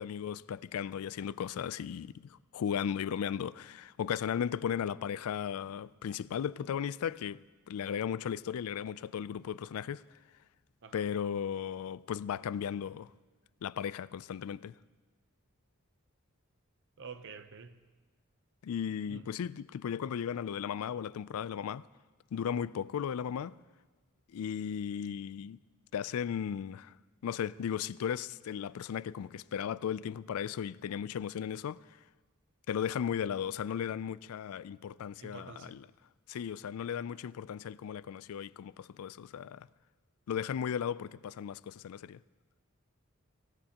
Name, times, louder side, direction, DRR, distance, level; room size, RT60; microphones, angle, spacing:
voice 1, 0.0-10.0 10.9-13.1 13.6-14.8 18.6-21.9 22.3-23.5 24.3-25.6 25.9-26.9 27.2-31.8 32.7-35.8 36.3-39.7 40.3-42.2, left 8 dB, 85° left, 0.3 m, -36 dB
voice 2, 17.0-17.8 19.1-19.3 35.2-35.8, right 5 dB, 60° right, 0.7 m, -48 dB
24.5 x 16.5 x 2.9 m
head